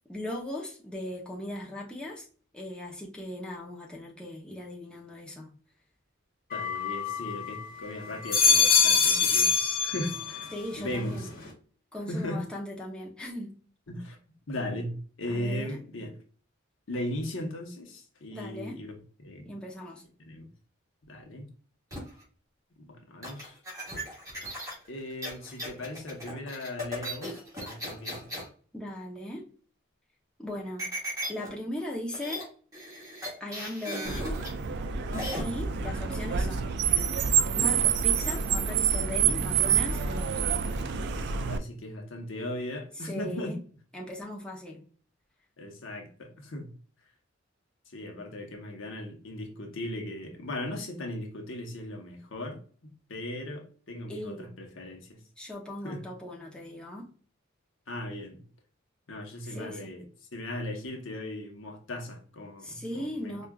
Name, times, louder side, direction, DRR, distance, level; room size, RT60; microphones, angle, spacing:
voice 1, 0.1-2.3 2.5-5.5 10.5-11.3 11.9-13.6 15.3-15.8 18.3-18.8 19.4-20.0 28.7-29.4 30.4-30.9 31.3-32.4 33.4-34.3 35.4-36.7 37.6-40.4 43.0-43.6 43.9-44.8 54.1-54.5 55.4-57.1 59.5-59.9 62.6-63.5, left 1 dB, 5° left, -3 dB, 0.7 m, -38 dB
voice 2, 6.5-9.5 9.8-11.3 12.1-12.4 13.9-14.2 14.5-16.1 16.9-19.5 20.2-20.5 21.1-21.5 22.8-23.6 24.9-28.2 41.3-43.6 45.6-46.7 47.9-55.2 55.8-56.0 57.9-58.4 59.1-63.5, left 1 dB, 75° left, 3 dB, 0.9 m, -38 dB
sound 1, 6.5-7.6 8.1-10.5 10.9-11.5, left 5 dB, 45° left, 1.1 m, -24 dB
sound 2, 21.9-22.2 23.2-28.5 30.8-31.5 31.8-31.9 32.1-32.5 32.7-34.5 35.1-35.4, equal, 20° right, 1.7 m, -37 dB
Car, 34.0-41.6, right 7 dB, 60° right, 0.4 m, -27 dB
4.7 x 2.4 x 2.3 m, 0.42 s
head